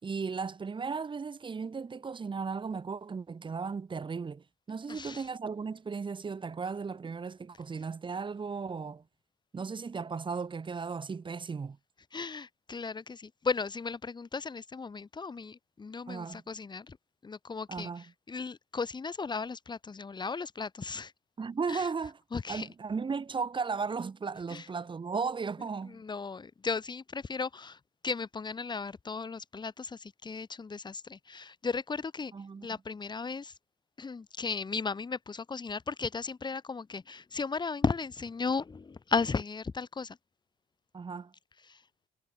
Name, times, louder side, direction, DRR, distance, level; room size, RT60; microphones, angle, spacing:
voice 1, 0.0-9.0 9.5-11.8 16.1-16.4 17.7-18.0 21.4-22.2 22.5-26.0 32.3-32.7 40.9-41.3, right 5 dB, 30° right, 5.2 m, -36 dB
voice 2, 4.9-5.2 12.1-17.0 17.2-21.1 21.7-21.9 22.3-22.7 24.5-24.6 25.9-27.8 28.0-32.3 32.6-33.5 34.0-40.2 41.7-41.8, left 4 dB, 25° left, 4.8 m, -35 dB
cardioid pair, 110°, 17 cm